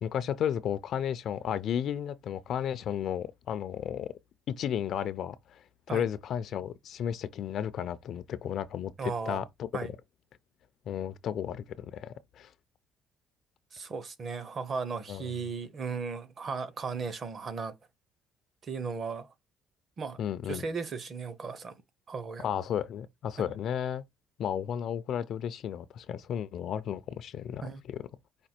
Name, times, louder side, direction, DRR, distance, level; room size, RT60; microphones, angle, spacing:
voice 1, 0.0-4.1 4.5-5.6 5.9-9.7 10.9-12.5 15.1-15.3 20.2-20.7 22.4-24.0 24.4-28.1, left 9 dB, 50° left, 0.4 m, -33 dB
voice 2, 9.0-9.4 9.7-9.9 13.7-17.7 18.6-19.3 20.0-20.2 20.5-21.8 22.1-22.5 23.4-23.5 27.6-27.8, right 5 dB, 35° right, 0.6 m, -36 dB
5.1 x 2.3 x 4.3 m
cardioid pair, 165°, 0 cm